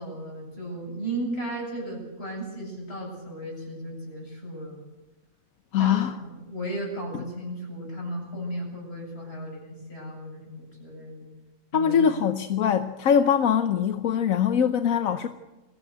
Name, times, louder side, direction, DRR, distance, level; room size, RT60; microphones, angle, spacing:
voice 1, 0.0-4.8 5.8-11.3 11.7-12.1, right 1 dB, 50° left, -1 dB, 8.3 m, -35 dB
voice 2, 5.7-6.1 11.7-15.3, left 8 dB, 85° left, 9 dB, 1.3 m, -22 dB
22.0 x 16.5 x 8.0 m, 1.1 s
omnidirectional pair, 1.4 m